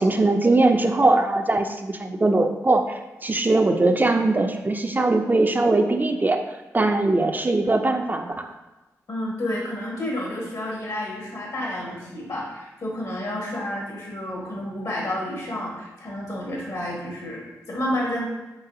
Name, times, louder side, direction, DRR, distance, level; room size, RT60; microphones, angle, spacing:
voice 1, 0.0-6.4 6.7-8.5, right 2 dB, 30° right, 5 dB, 0.4 m, -21 dB
voice 2, 9.1-18.3, left 1 dB, 65° left, -3 dB, 1.5 m, -30 dB
4.0 x 3.7 x 2.7 m, 1.1 s
cardioid pair, 45°, 6 cm